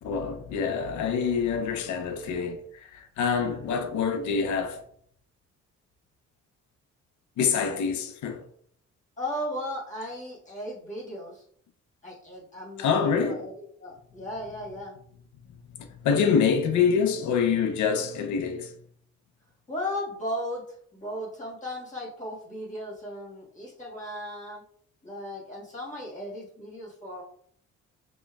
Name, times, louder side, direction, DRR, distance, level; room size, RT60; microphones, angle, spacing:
voice 1, 0.0-4.8 7.4-8.4 12.8-13.4 15.5-18.8, left 6 dB, 70° left, 0.7 m, -26 dB
voice 2, 9.2-11.4 12.0-13.5 13.8-14.9 19.7-20.7 20.9-24.6 25.0-27.2, left 1 dB, 25° left, 1.6 m, -36 dB
5.2 x 3.0 x 2.3 m
cardioid pair, 90°, 30 cm